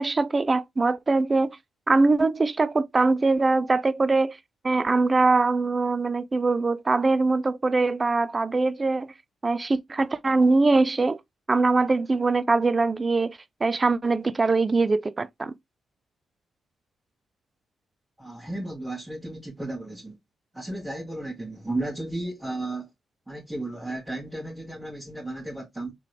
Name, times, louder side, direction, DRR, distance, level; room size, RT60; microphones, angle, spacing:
voice 1, 0.0-1.6 1.9-4.4 4.6-9.1 9.4-11.2 11.5-15.5, right 3 dB, 35° right, 0.4 m, -22 dB
voice 2, 18.2-20.2 20.5-22.9 23.3-25.9, right 2 dB, 15° right, 1.8 m, -34 dB
3.7 x 3.2 x 3.2 m
supercardioid pair, 60°, 0 cm